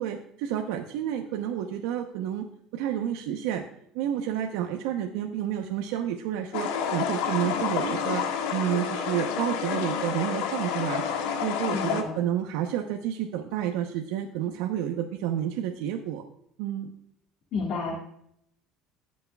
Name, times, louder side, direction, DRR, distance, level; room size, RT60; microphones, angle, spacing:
voice 1, 0.0-2.5 2.7-3.6 3.9-8.2 8.5-11.0 11.4-16.2 16.6-16.9, right 10 dB, 85° right, 3 dB, 0.9 m, -30 dB
sound 1, 6.5-12.0, left 7 dB, 85° left, 1.4 m, -29 dB
voice 2, 11.7-12.3 17.5-18.0, left 4 dB, 45° left, -1 dB, 1.7 m, -31 dB
18.0 x 6.4 x 2.4 m, 0.72 s
cardioid pair, 160°, 0 cm